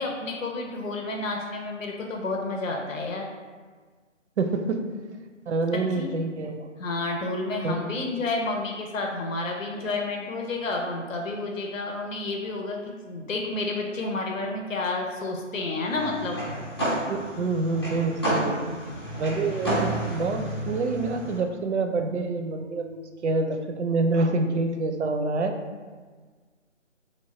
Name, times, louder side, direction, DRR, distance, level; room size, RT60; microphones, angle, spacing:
voice 1, 0.0-3.2 5.7-6.1 6.8-16.4 18.4-18.9, left 2 dB, 85° left, 1 dB, 0.7 m, -30 dB
voice 2, 4.4-4.8 5.5-6.7 7.6-7.8 17.1-18.6 19.2-25.6, right 3 dB, 65° right, 5 dB, 0.5 m, -27 dB
sound 1, 15.9-21.4, right 1 dB, 20° left, 0.6 m, -30 dB
3.1 x 2.1 x 4.1 m, 1.5 s
hypercardioid pair, 170°, 38 cm